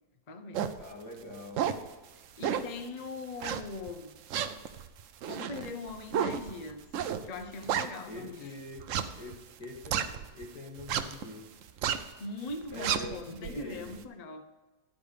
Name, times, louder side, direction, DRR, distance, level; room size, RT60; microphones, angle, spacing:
voice 1, 0.3-0.8 2.4-4.2 5.2-6.8 7.2-8.5 12.2-14.4, left 3 dB, 45° left, 8 dB, 0.5 m, -41 dB
sound 1, 0.5-0.8 1.3-1.9 2.4-2.8 3.4-3.9 4.3-8.3 8.8-10.4 10.8-11.2 11.6-12.1 12.5-14.0, right 8 dB, 65° right, 0.8 m, -32 dB
voice 2, 0.8-1.6 8.1-8.9 9.2-11.4 12.7-13.9, left 1 dB, 75° left, 1 dB, 2.4 m, -44 dB
11.0 x 5.3 x 6.5 m, 1.2 s
omnidirectional pair, 1.8 m